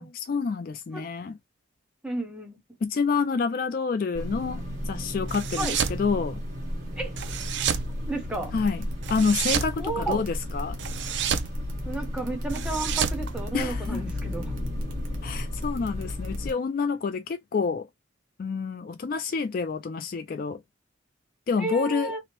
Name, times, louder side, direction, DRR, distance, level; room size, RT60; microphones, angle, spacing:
voice 1, 0.0-1.4 2.8-6.4 8.5-8.8 9.1-10.3 10.5-10.8 13.5-14.0 15.2-17.9 18.4-20.6 21.5-22.2, left 5 dB, 45° left, 0.3 m, -28 dB
voice 2, 2.0-2.6 5.6-5.8 7.0-7.1 8.1-8.5 9.8-10.2 11.8-14.6 21.6-22.2, right 2 dB, 5° right, 0.7 m, -32 dB
sound 1, 4.1-16.5, left 1 dB, 40° right, 1.5 m, -34 dB
sound 2, 5.3-6.0 7.2-7.9 9.0-9.8 10.8-11.5 12.5-14.0, right 8 dB, 60° right, 0.4 m, -29 dB
sound 3, 8.3-16.5, equal, 80° right, 1.0 m, -42 dB
2.9 x 2.1 x 2.9 m
head